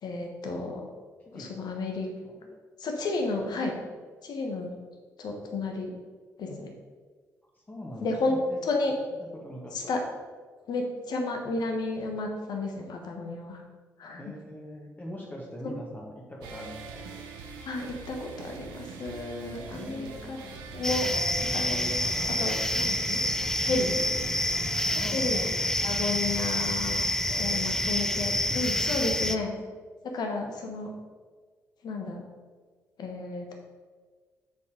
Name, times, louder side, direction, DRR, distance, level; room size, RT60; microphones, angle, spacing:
voice 1, 0.0-0.8 1.3-2.1 2.8-3.7 4.2-4.7 5.2-5.9 6.4-6.7 8.0-8.9 9.7-10.0 10.7-13.6 14.0-14.3 15.6-15.8 17.6-21.1 21.5-23.2 23.6-24.0 25.1-25.4 25.8-27.0 27.4-29.5 30.0-30.9 31.8-32.2 33.0-33.5, left 3 dB, 60° left, 3 dB, 1.3 m, -32 dB
voice 2, 1.3-1.6 2.2-2.5 7.7-8.6 9.4-9.9 14.2-16.8 19.7-20.5 24.9-25.7 27.3-28.0, equal, 20° left, -3 dB, 1.8 m, -42 dB
sound 1, 16.4-25.3, right 4 dB, 75° right, 0.8 m, -43 dB
sound 2, 20.8-29.4, left 1 dB, 5° left, 0.5 m, -28 dB
6.6 x 4.9 x 5.0 m, 1.5 s
hypercardioid pair, 40°, 8 cm